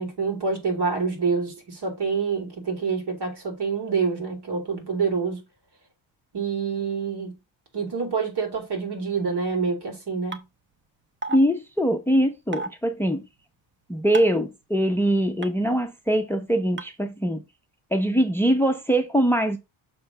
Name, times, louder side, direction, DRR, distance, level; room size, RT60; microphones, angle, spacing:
voice 1, 0.0-5.4 6.3-7.3 7.7-10.4, right 5 dB, 55° right, 3.1 m, -27 dB
sound 1, 10.3-10.4 11.2-11.4 12.5-12.7 14.1-14.4 15.4-15.5 16.8-16.9, right 3 dB, 25° right, 0.9 m, -30 dB
voice 2, 11.3-13.2 13.9-17.4 17.9-19.6, right 1 dB, 5° left, 0.7 m, -22 dB
6.6 x 3.3 x 5.9 m
cardioid pair, 105°, 48 cm